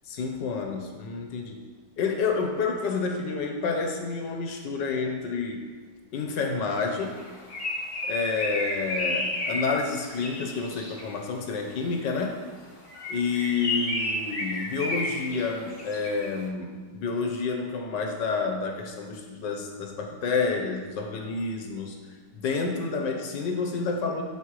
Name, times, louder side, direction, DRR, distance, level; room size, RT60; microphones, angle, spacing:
voice 1, 0.1-1.6 2.0-5.6 6.1-7.2 8.0-12.4 13.1-22.0 22.3-24.2, left 4 dB, 85° left, 2 dB, 1.6 m, -29 dB
Bird, 7.1-11.2 12.8-16.4, left 2 dB, 45° left, 1.4 m, -32 dB
14.0 x 5.5 x 3.2 m, 1.5 s
omnidirectional pair, 1.9 m